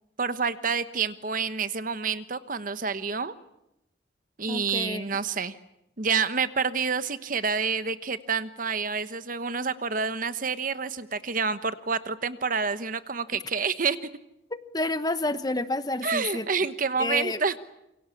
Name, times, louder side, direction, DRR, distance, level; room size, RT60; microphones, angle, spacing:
voice 1, 0.2-3.3 4.4-5.6 6.0-14.1 16.0-17.6, right 5 dB, 45° right, 12 dB, 1.1 m, -28 dB
voice 2, 4.5-5.0 14.5-16.4 17.0-17.4, left 2 dB, 20° left, 11 dB, 1.1 m, -29 dB
27.0 x 24.0 x 8.5 m, 0.87 s
head